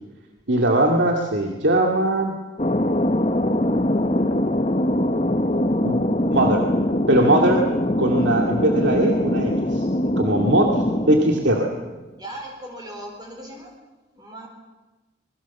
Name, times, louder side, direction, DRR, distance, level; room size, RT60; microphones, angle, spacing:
voice 1, 0.5-2.3 5.8-6.0 6.3-6.7 7.1-7.6 8.0-9.9 10.2-11.7, right 1 dB, 70° right, 1 dB, 2.4 m, -20 dB
Thunder, 2.6-11.9, left 1 dB, 35° left, 1.1 m, -22 dB
voice 2, 12.2-13.7 14.1-14.5, right 1 dB, 20° right, 1 dB, 4.3 m, -37 dB
26.5 x 21.5 x 7.3 m, 1.2 s
head